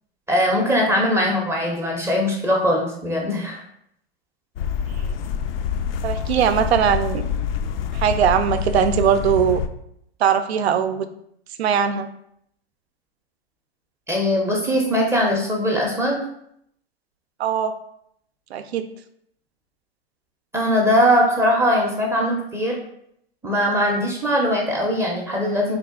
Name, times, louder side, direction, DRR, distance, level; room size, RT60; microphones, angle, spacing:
voice 1, 0.3-3.6 14.1-16.2 20.5-22.8 23.4-25.8, equal, 10° right, -1 dB, 0.5 m, -20 dB
sound 1, 4.6-9.7, left 7 dB, 65° left, 0.4 m, -26 dB
voice 2, 6.0-7.3 7.9-9.6 10.2-11.1 11.6-12.1 17.4-17.7 18.5-18.8, right 8 dB, 90° right, 10 dB, 0.5 m, -20 dB
3.5 x 2.4 x 3.6 m, 0.72 s
hypercardioid pair, 120°, 31 cm